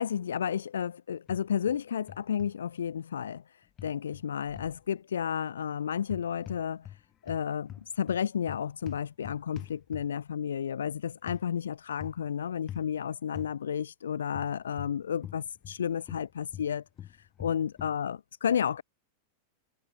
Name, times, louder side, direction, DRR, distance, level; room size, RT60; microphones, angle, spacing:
voice 1, 0.0-3.4 3.8-6.9 7.2-16.8 17.4-18.8, left 8 dB, 65° left, 0.7 m, -32 dB
sound 1, 1.3-1.8 2.1-2.5 3.8-4.8 6.0-7.0 7.3-10.3 11.3-11.4 12.0-12.3 12.7-12.9 13.4-13.5 14.3-15.8 16.1-18.0, left 11 dB, 30° left, 2.3 m, -44 dB
figure-of-eight pair, 90°, 0 cm